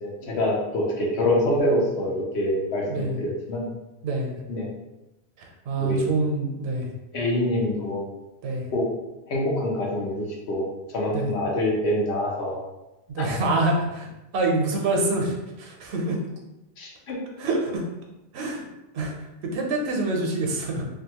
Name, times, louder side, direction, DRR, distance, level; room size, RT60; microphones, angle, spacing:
voice 1, 0.0-3.7 4.5-4.7 5.8-6.1 7.1-8.0 8.7-8.9 9.3-10.7 10.9-12.6 13.2-13.3 16.8-17.2, left 1 dB, 85° left, -2 dB, 1.0 m, -25 dB
voice 2, 2.8-3.2 4.0-4.4 5.4-6.9 8.4-8.7 11.1-11.3 13.1-14.1 14.3-16.2 17.4-17.8 18.3-18.7 18.9-19.1 19.4-20.8, right 2 dB, 80° right, 1 dB, 0.9 m, -26 dB
2.6 x 2.3 x 2.8 m, 0.98 s
omnidirectional pair, 1.1 m